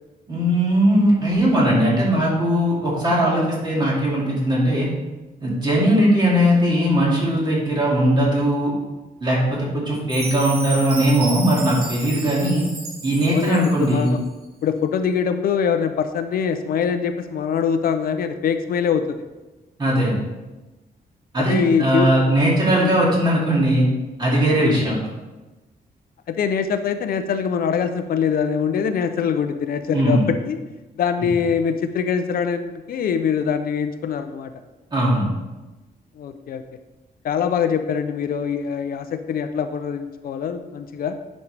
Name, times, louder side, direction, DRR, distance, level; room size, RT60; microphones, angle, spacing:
voice 1, 0.3-4.9 5.4-8.7 9.2-12.6 13.0-14.1 19.8-20.1 21.3-23.9 24.2-24.9 29.9-30.2 34.9-35.3, right 1 dB, 30° right, -5 dB, 2.3 m, -19 dB
Chime, 10.1-14.2, right 2 dB, 80° right, 2.0 m, -34 dB
voice 2, 13.3-14.2 14.6-19.2 21.4-22.1 22.8-22.9 24.6-24.8 26.3-30.6 31.0-34.5 36.2-36.6 37.2-41.1, left 7 dB, 70° left, 9 dB, 0.5 m, -23 dB
9.9 x 5.2 x 3.3 m, 1.1 s
wide cardioid pair, 175°, 16 cm